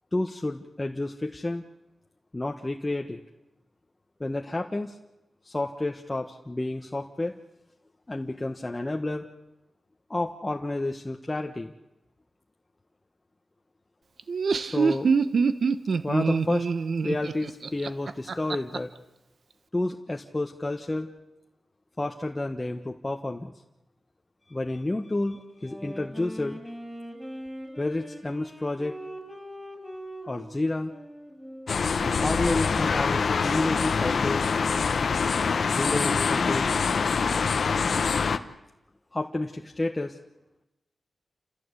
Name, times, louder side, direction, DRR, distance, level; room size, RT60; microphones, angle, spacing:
voice 1, 0.1-1.6 2.3-3.2 4.2-5.0 5.4-7.4 8.1-9.3 10.1-11.7 14.6-15.1 16.0-16.7 17.0-18.9 19.7-21.1 22.0-23.5 24.5-26.6 27.8-29.0 30.3-30.9 32.0-34.5 35.7-36.8 39.1-40.2, left 2 dB, 25° left, 2 dB, 1.4 m, -30 dB
Laughter, 14.2-18.8, right 5 dB, 70° right, 1.0 m, -25 dB
Wind instrument woodwind instrument, 25.5-34.2, equal, ahead, 7.8 m, -42 dB
sound 1, 31.7-38.4, left 5 dB, 70° left, 1.1 m, -25 dB
29.0 x 15.5 x 8.4 m, 0.95 s
cardioid pair, 65°, 0 cm